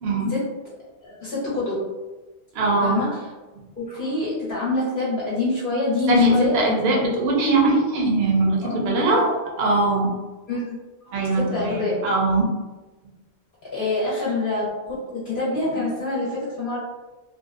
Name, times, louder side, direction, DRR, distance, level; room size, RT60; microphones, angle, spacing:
voice 1, 0.0-0.3 2.5-3.0 6.1-9.2 9.6-10.1 11.1-12.5, right 2 dB, 70° right, -1 dB, 0.8 m, -21 dB
voice 2, 1.0-1.9 2.8-3.3 3.8-7.0 8.6-9.3 10.5-10.8 11.1-12.0 13.7-16.8, left 2 dB, 55° left, -9 dB, 0.8 m, -26 dB
2.6 x 2.1 x 2.4 m, 1.2 s
omnidirectional pair, 1.1 m